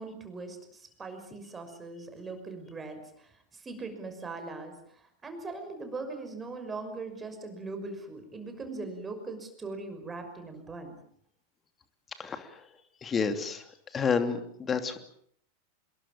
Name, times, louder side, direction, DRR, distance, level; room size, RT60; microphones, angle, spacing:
voice 1, 0.0-11.0, right 3 dB, 15° right, 6 dB, 6.0 m, -40 dB
voice 2, 12.2-12.7 13.0-15.0, left 5 dB, 20° left, 9 dB, 2.8 m, -30 dB
26.5 x 22.0 x 7.5 m, 0.65 s
figure-of-eight pair, 90°, 0 cm